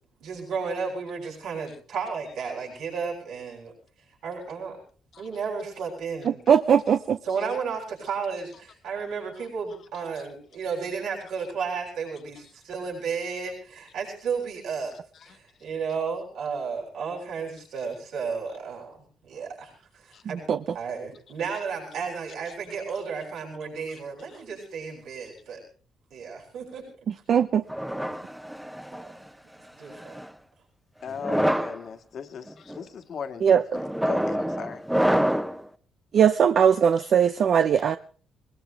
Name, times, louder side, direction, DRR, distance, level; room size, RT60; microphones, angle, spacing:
voice 1, 0.2-3.7 4.2-4.8 5.2-6.4 7.2-14.9 15.2-25.6 26.1-26.9 28.9-29.0 29.7-30.2, right 5 dB, 80° right, -2 dB, 7.2 m, -33 dB
voice 2, 6.5-7.2 20.5-20.6 27.3-27.6 33.4-33.6 36.1-38.0, right 8 dB, 60° right, 10 dB, 0.7 m, -19 dB
sound 1, 27.7-29.1 29.9-30.3 31.1-31.8 32.5-32.8 33.7-35.6, equal, 5° right, 1.0 m, -26 dB
voice 3, 31.0-34.8 37.8-37.9, left 7 dB, 60° left, 7 dB, 1.9 m, -38 dB
20.5 x 20.5 x 3.4 m, 0.42 s
cardioid pair, 90°, 0 cm